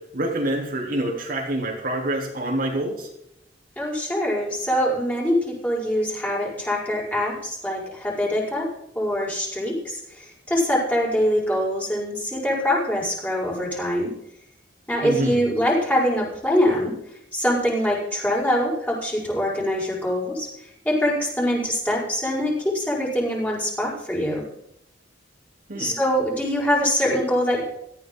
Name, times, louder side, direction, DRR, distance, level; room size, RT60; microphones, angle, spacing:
voice 1, 0.1-3.1 15.0-15.4 25.7-26.0, right 1 dB, 50° right, -1 dB, 3.4 m, -26 dB
voice 2, 3.8-8.7 8.9-14.1 14.9-16.9 17.3-24.4 25.7-27.6, equal, 10° left, -4 dB, 5.6 m, -24 dB
18.0 x 14.5 x 3.8 m, 0.77 s
head